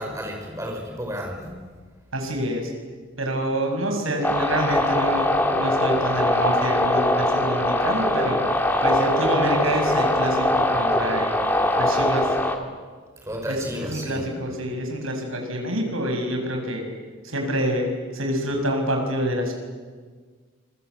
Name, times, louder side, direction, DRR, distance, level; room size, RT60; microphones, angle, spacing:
voice 1, 0.0-1.5 13.3-14.3, equal, 15° right, 1 dB, 5.7 m, -32 dB
voice 2, 2.1-2.7 3.2-8.4 8.8-11.4 11.8-12.3 13.5-16.8 17.2-17.9 18.1-19.5, right 1 dB, 80° right, 3 dB, 6.3 m, -27 dB
sound 1, 4.2-12.6, left 1 dB, 10° left, 2.1 m, -22 dB
27.5 x 22.5 x 8.2 m, 1.5 s
head